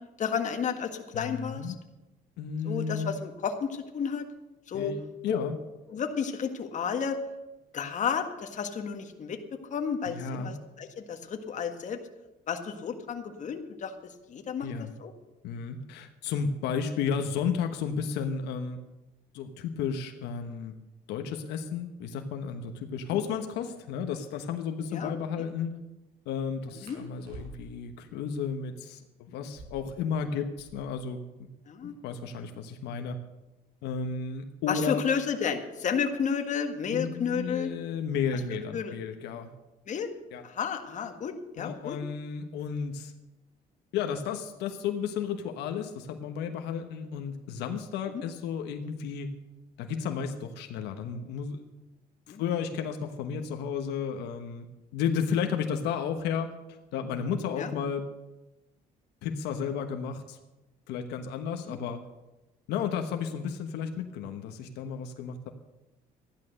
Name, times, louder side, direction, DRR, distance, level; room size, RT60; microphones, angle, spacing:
voice 1, 0.2-1.7 2.6-4.2 4.7-4.9 5.2-5.4 5.9-7.2 7.7-9.4 9.7-12.0 12.5-13.9 14.3-14.7 15.0-15.1 24.9-25.5 26.7-27.0 31.7-32.0 34.7-37.7 38.5-39.0 39.9-40.1 40.4-42.0 48.1-48.2 52.3-52.4 57.6-57.7 61.7-61.8, left 6 dB, 45° left, 5 dB, 1.7 m, -32 dB
voice 2, 1.1-1.8 2.4-3.1 4.7-5.6 10.1-10.5 14.6-14.9 15.4-18.8 19.3-20.7 21.1-25.8 26.2-31.5 31.8-33.2 33.8-35.0 36.9-39.5 40.3-40.4 41.6-43.1 43.9-49.3 49.8-51.6 52.3-54.7 54.9-56.5 56.9-58.0 59.2-60.4 60.9-62.0 62.7-65.5, left 6 dB, 85° left, 6 dB, 1.2 m, -33 dB
sound 1, 26.8-27.9 29.4-31.0 31.3-31.4 31.6-32.2 32.8-35.4 36.4-36.7 37.1-37.6 37.9-38.7, right 2 dB, 75° right, 5.5 m, -51 dB
13.5 x 11.0 x 6.5 m, 1.0 s
cardioid pair, 110°, 17 cm